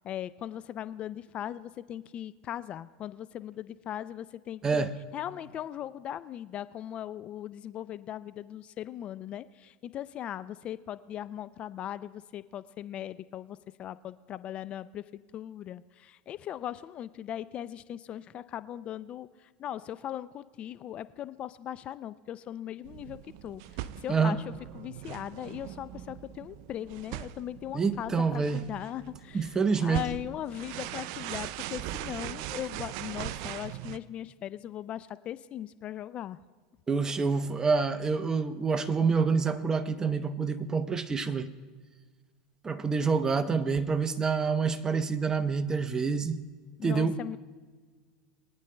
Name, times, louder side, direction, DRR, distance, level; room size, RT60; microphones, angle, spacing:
voice 1, 0.0-4.8 5.1-23.2 23.4-36.4 46.8-47.4, left 11 dB, 40° left, 0.4 m, -39 dB
voice 2, 4.6-4.9 24.1-24.4 27.7-28.6 29.3-30.0 36.9-41.5 42.6-46.4 46.8-47.2, right 5 dB, 20° right, 0.7 m, -27 dB
sound 1, 22.8-34.0, right 13 dB, 65° right, 0.4 m, -41 dB
23.0 x 9.8 x 2.2 m
hypercardioid pair, 105°, 3 cm